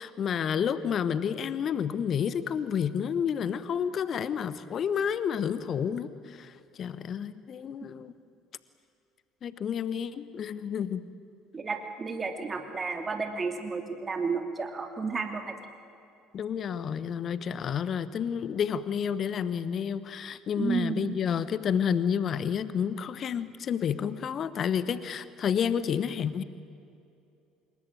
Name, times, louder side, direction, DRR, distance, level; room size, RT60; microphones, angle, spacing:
voice 1, 0.0-6.5 6.8-8.1 9.4-11.1 16.3-26.4, left 7 dB, 45° left, 15 dB, 1.1 m, -30 dB
voice 2, 11.5-15.5 20.6-21.1, right 4 dB, 30° right, 5 dB, 2.7 m, -32 dB
26.0 x 22.5 x 9.3 m, 2.6 s
figure-of-eight pair, 60°, 0 cm